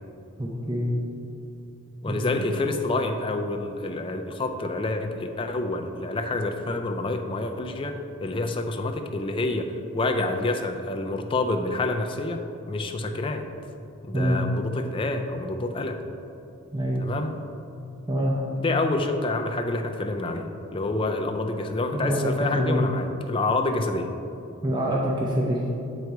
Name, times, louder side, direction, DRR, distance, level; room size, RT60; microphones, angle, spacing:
voice 1, 0.4-0.9 2.1-2.5 14.1-14.4 16.7-17.0 18.1-18.4 21.9-22.8 24.6-25.6, equal, 20° right, -3 dB, 0.6 m, -25 dB
voice 2, 2.0-12.4 12.7-13.5 14.0-16.0 17.0-17.4 18.6-24.1, left 2 dB, 25° left, 5 dB, 0.4 m, -28 dB
7.9 x 4.1 x 4.7 m, 2.7 s
head